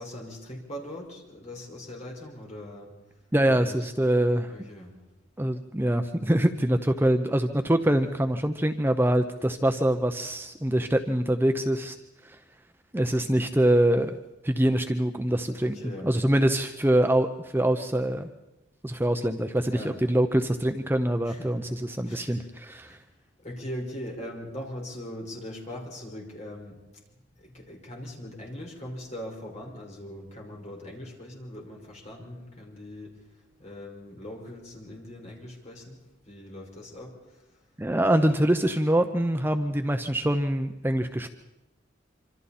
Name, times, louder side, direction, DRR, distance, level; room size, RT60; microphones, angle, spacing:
voice 1, 0.0-2.9 3.4-3.9 4.5-4.9 15.6-16.1 19.6-20.0 21.2-22.5 22.9-23.0 23.4-26.8 27.4-33.1 33.6-36.0 36.3-37.1, left 1 dB, 40° left, 0 dB, 5.3 m, -40 dB
voice 2, 3.3-4.5 5.4-12.0 12.2-12.4 12.9-14.1 14.4-18.3 18.8-23.0 37.8-41.3, right 1 dB, 10° right, 7 dB, 0.7 m, -24 dB
26.0 x 26.0 x 4.3 m, 0.99 s
head